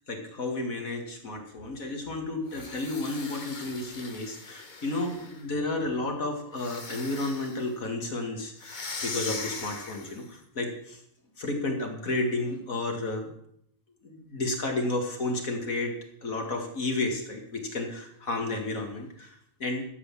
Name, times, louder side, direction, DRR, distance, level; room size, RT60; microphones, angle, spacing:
voice 1, 0.1-11.0 11.4-13.3 14.0-15.9 16.2-19.8, left 2 dB, 85° left, 2 dB, 2.7 m, -32 dB
sound 1, 2.5-5.5 6.5-7.7 8.6-10.3, left 3 dB, 35° left, 1.4 m, -40 dB
12.5 x 8.1 x 7.5 m, 0.72 s
omnidirectional pair, 1.4 m